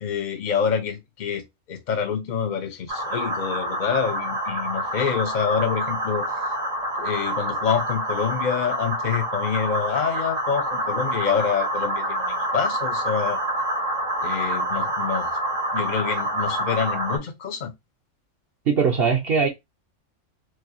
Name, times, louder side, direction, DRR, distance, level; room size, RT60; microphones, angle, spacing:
voice 1, 0.0-6.3 7.0-13.4 14.2-15.4 15.7-17.7, left 7 dB, 45° left, 0.7 m, -27 dB
sound 1, 2.9-17.2, right 1 dB, 80° right, 1.9 m, -27 dB
voice 2, 18.7-19.5, right 6 dB, 55° right, 0.8 m, -20 dB
4.7 x 2.2 x 2.7 m
omnidirectional pair, 1.3 m